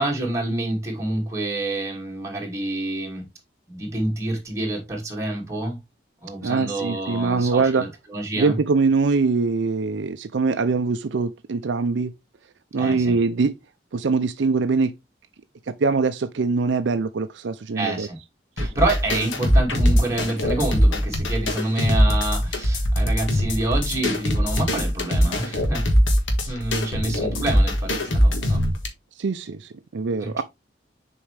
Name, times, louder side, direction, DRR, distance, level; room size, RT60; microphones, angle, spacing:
voice 1, 0.0-3.3 3.7-5.8 6.2-8.6 12.8-13.2 17.7-18.2 18.6-25.9 26.5-28.7 30.2-30.4, right 2 dB, 15° right, 2.3 m, -27 dB
voice 2, 6.4-7.9 8.3-12.1 12.7-13.6 13.9-14.9 15.8-18.1 18.6-18.7 29.2-30.4, right 4 dB, 75° right, 0.5 m, -23 dB
sound 1, 18.6-28.9, equal, 85° left, 1.7 m, -21 dB
7.1 x 4.5 x 3.3 m
head